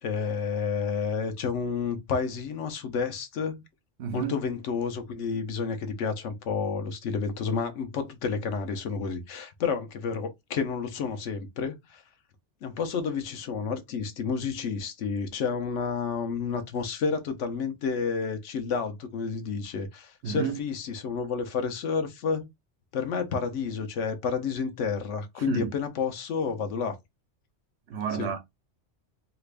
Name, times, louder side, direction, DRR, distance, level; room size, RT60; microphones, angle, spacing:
voice 1, 0.0-3.6 4.1-12.0 12.6-22.5 22.9-27.0 28.2-28.3, left 5 dB, 85° left, 1.1 m, -30 dB
voice 2, 4.0-4.4 20.2-20.6 25.4-25.7 27.9-28.4, right 7 dB, 70° right, 0.9 m, -30 dB
3.0 x 2.4 x 3.3 m
omnidirectional pair, 1.2 m